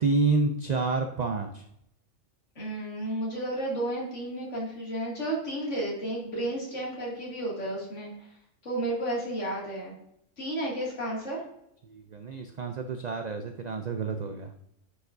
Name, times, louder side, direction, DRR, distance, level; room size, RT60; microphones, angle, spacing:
voice 1, 0.0-1.6 11.8-14.5, right 3 dB, 65° right, 6 dB, 0.4 m, -29 dB
voice 2, 2.6-8.1 8.6-9.9 10.4-11.4, right 1 dB, 65° left, -4 dB, 2.7 m, -32 dB
9.8 x 4.8 x 2.6 m, 0.77 s
omnidirectional pair, 1.3 m